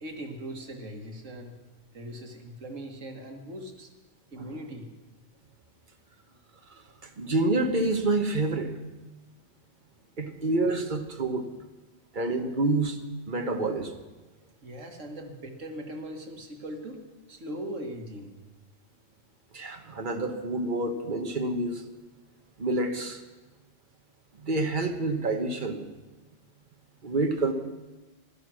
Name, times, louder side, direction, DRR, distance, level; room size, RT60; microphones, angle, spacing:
voice 1, 0.0-1.6 1.9-3.9 4.3-4.9 14.6-17.0 17.3-18.3, right 1 dB, 90° right, 4 dB, 2.0 m, -40 dB
voice 2, 7.2-8.7 10.2-11.4 12.1-13.0 13.3-13.9 19.5-21.8 22.6-23.2 24.4-25.8 27.0-27.5, right 2 dB, 40° right, 6 dB, 1.3 m, -27 dB
16.0 x 12.5 x 6.2 m, 1.2 s
omnidirectional pair, 1.3 m